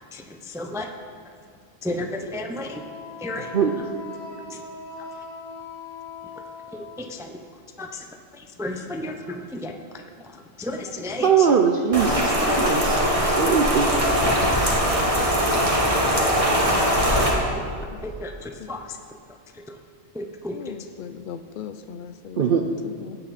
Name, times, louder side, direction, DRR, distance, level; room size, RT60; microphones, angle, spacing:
voice 1, 0.1-0.9 1.8-2.8 3.2-3.8 4.5-4.7 5.0-5.2 6.3-6.4 6.7-7.5 7.8-11.6 12.3-12.7 16.8-19.0 19.3-19.8 20.1-20.8, left 1 dB, 5° right, 4 dB, 0.4 m, -34 dB
Wind instrument woodwind instrument, 2.7-7.1, left 4 dB, 20° left, 2.2 m, -40 dB
voice 2, 11.2-13.9 14.5-14.8 22.4-22.7, right 7 dB, 55° right, 4 dB, 0.7 m, -21 dB
Rain, 11.9-17.3, equal, 25° right, 1.7 m, -21 dB
voice 3, 20.5-23.2, left 8 dB, 60° left, 11 dB, 0.5 m, -38 dB
16.5 x 9.1 x 4.2 m, 2.2 s
omnidirectional pair, 1.3 m